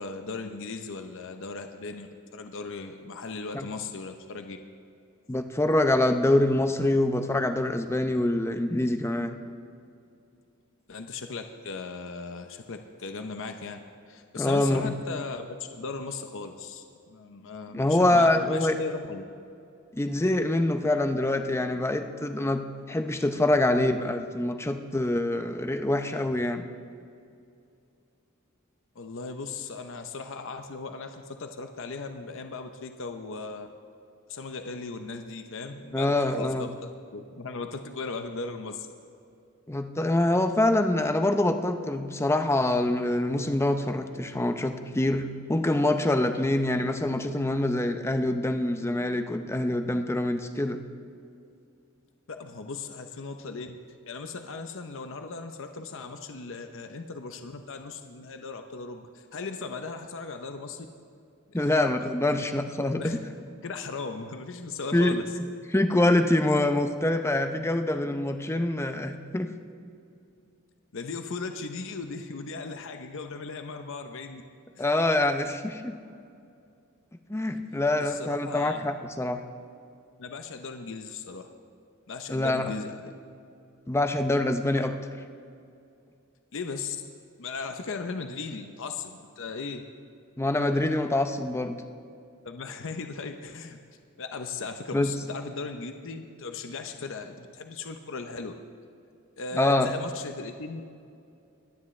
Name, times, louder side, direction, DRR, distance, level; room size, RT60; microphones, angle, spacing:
voice 1, 0.0-2.1 2.3-4.6 10.9-13.8 14.1-15.4 15.7-19.2 29.0-33.7 34.3-38.9 52.3-53.7 54.1-60.9 61.5-61.6 62.4-62.5 62.8-63.2 63.6-65.2 70.9-74.4 78.0-78.9 80.2-81.5 82.1-83.1 86.5-87.0 87.4-89.8 92.4-93.8 94.2-98.5 99.4-100.8, left 4 dB, 65° left, 6 dB, 0.7 m, -37 dB
voice 2, 5.3-9.4 14.3-14.9 17.7-18.7 19.9-26.7 35.9-36.7 39.7-50.8 61.5-63.2 64.9-65.2 65.7-69.5 74.8-76.0 77.3-79.4 82.3-82.7 83.9-84.9 90.4-91.8 94.9-95.1 99.5-99.9, left 1 dB, 10° left, 7 dB, 0.6 m, -25 dB
22.0 x 10.0 x 3.2 m, 2.5 s
head